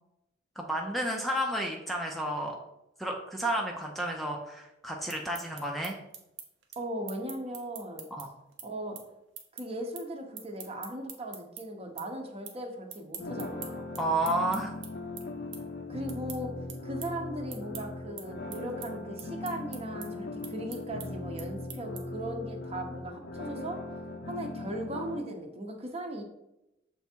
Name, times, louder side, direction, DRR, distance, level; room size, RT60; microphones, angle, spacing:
voice 1, 0.6-2.5 3.0-6.0 8.1-8.3 14.0-14.7, right 1 dB, ahead, 0 dB, 0.6 m, -31 dB
sound 1, 4.9-11.6 12.0-12.6 12.9-22.3, right 7 dB, 90° right, 1.1 m, -45 dB
voice 2, 6.8-8.1 8.6-9.0 9.5-13.9 15.9-16.5 16.8-23.8 24.2-26.2, right 1 dB, 35° right, 3 dB, 0.9 m, -38 dB
sound 2, 13.2-25.2, left 2 dB, 60° left, 0.6 m, -39 dB
7.0 x 3.4 x 4.5 m, 0.89 s
head